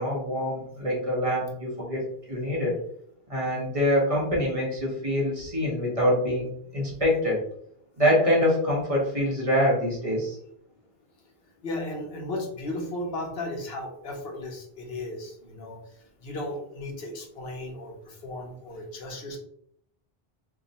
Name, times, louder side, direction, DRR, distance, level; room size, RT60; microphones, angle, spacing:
voice 1, 0.0-2.8 3.3-7.4 8.0-10.4, equal, 35° right, -4 dB, 1.2 m, -25 dB
voice 2, 11.6-15.8 16.2-19.4, left 1 dB, 70° left, 2 dB, 1.1 m, -35 dB
3.5 x 2.6 x 4.0 m, 0.68 s
omnidirectional pair, 1.0 m